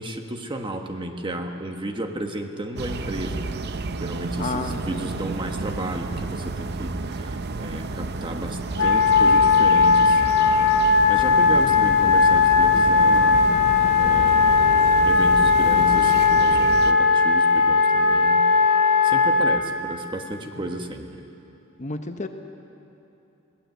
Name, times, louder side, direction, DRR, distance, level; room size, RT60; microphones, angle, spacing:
voice 1, 0.0-3.4 4.0-10.6 11.1-13.5 14.0-14.7 15.0-18.5 19.0-21.0, right 1 dB, 25° right, 4 dB, 1.4 m, -33 dB
sound 1, 2.8-16.9, right 3 dB, 50° right, 0.7 m, -31 dB
voice 2, 4.4-5.3 13.8-14.1 21.8-22.3, left 3 dB, 35° left, 6 dB, 0.9 m, -32 dB
Wind instrument woodwind instrument, 8.8-19.6, left 4 dB, 80° left, 2.2 m, -18 dB
21.5 x 18.0 x 8.0 m, 2.9 s
head